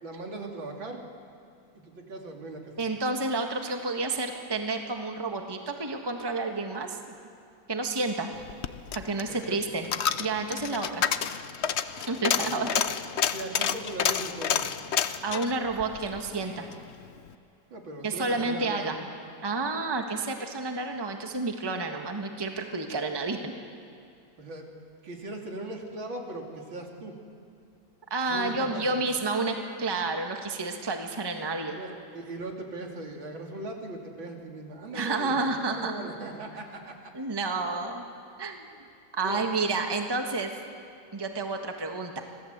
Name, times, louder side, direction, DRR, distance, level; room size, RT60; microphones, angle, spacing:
voice 1, 0.0-1.0 1.7-2.8 9.3-9.6 12.3-12.7 13.3-14.7 17.7-18.9 24.4-24.7 25.0-27.2 28.3-29.0 31.8-37.1 39.2-39.5, right 2 dB, 75° right, 1 dB, 3.5 m, -39 dB
voice 2, 2.8-7.0 7.7-8.3 8.9-9.9 10.2-11.0 12.1-12.7 15.2-16.7 18.0-19.0 19.4-23.5 28.1-31.8 34.9-35.9 37.1-38.0 38.4-38.7 39.1-40.5 41.1-42.2, right 3 dB, 15° right, 4 dB, 1.4 m, -30 dB
Coin (dropping), 8.4-16.8 17.2-17.3, left 8 dB, 85° left, 0.6 m, -29 dB
26.0 x 18.0 x 8.1 m, 2.5 s
omnidirectional pair, 2.2 m